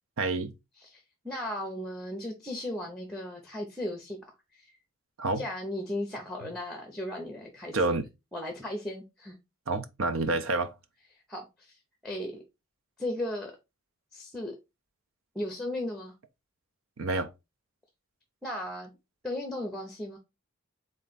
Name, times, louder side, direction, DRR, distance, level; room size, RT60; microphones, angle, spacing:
voice 1, 0.2-0.5 5.2-5.4 7.7-8.1 9.7-10.7 17.0-17.3, right 3 dB, 70° right, 0.6 m, -28 dB
voice 2, 0.8-4.2 4.5-4.7 5.4-7.8 8.3-9.4 11.3-12.4 13.0-13.5 14.1-14.6 15.3-16.1 18.4-18.9 19.2-20.2, left 1 dB, ahead, 0.8 m, -36 dB
3.8 x 3.2 x 4.0 m
head